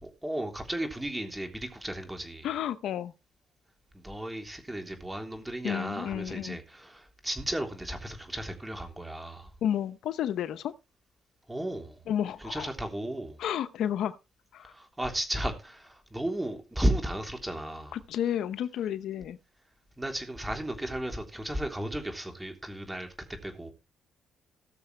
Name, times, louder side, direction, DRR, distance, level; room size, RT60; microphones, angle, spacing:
voice 1, 0.0-2.5 3.9-9.5 11.5-12.0 12.4-13.4 14.6-18.0 20.0-23.1 23.4-23.7, right 1 dB, 10° right, 3.3 m, -34 dB
voice 2, 2.4-3.1 5.6-6.6 9.6-10.7 12.1-12.7 13.4-14.2 14.5-14.7 17.9-19.4, left 10 dB, 80° left, 0.8 m, -31 dB
18.5 x 6.7 x 3.3 m
cardioid pair, 90°, 0 cm